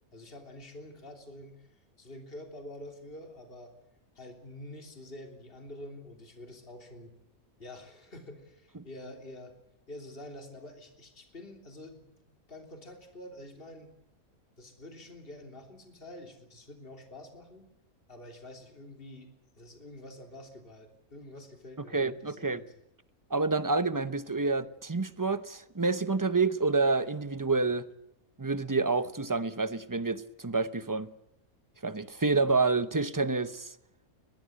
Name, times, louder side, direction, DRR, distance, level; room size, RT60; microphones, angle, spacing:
voice 1, 0.1-3.7 4.1-7.1 7.6-9.5 9.9-13.9 14.6-17.7 18.1-22.7, left 1 dB, 40° left, 3.4 m, -47 dB
voice 2, 21.9-22.6 23.3-27.9 28.4-31.1 31.8-33.7, right 3 dB, 20° right, 0.7 m, -28 dB
24.0 x 20.0 x 7.8 m
omnidirectional pair, 1.5 m